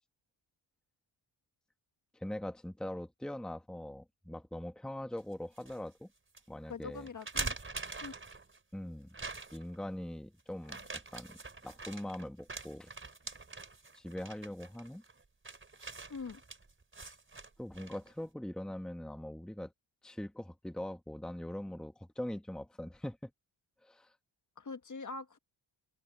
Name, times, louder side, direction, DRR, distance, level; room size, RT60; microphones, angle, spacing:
voice 1, 2.1-6.1 6.5-7.1 8.7-9.2 9.5-11.4 11.6-12.9 13.9-15.0 17.6-19.7 20.0-23.3 23.8-24.1, left 1 dB, ahead, 1.2 m, -42 dB
sound 1, 5.2-5.8 6.3-6.4 7.1-8.6 9.1-9.8 10.6-18.1, right 3 dB, 25° right, 4.4 m, -44 dB
voice 2, 6.7-7.6 8.0-8.1 16.1-16.4 24.6-25.4, left 4 dB, 40° left, 1.7 m, -43 dB
open air
wide cardioid pair, 120°, 47 cm